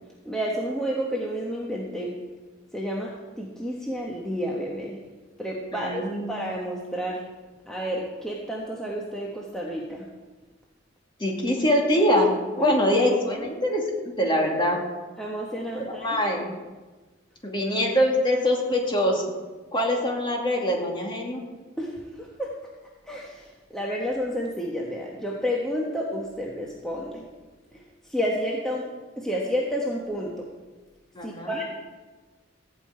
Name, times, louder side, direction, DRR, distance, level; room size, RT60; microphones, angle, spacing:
voice 1, 0.2-2.1 2.7-5.0 5.4-7.2 7.7-10.1 12.6-12.7 15.2-16.1 21.8-22.5 23.1-27.2 28.1-28.9 29.2-30.5 31.2-31.6, equal, 5° left, -3 dB, 1.3 m, -30 dB
voice 2, 5.7-6.3 11.2-12.3 12.6-13.8 14.2-14.8 15.7-16.5 17.4-19.2 19.7-21.4 31.1-31.6, left 1 dB, 25° left, 0 dB, 2.3 m, -23 dB
15.0 x 5.7 x 8.8 m, 1.3 s
head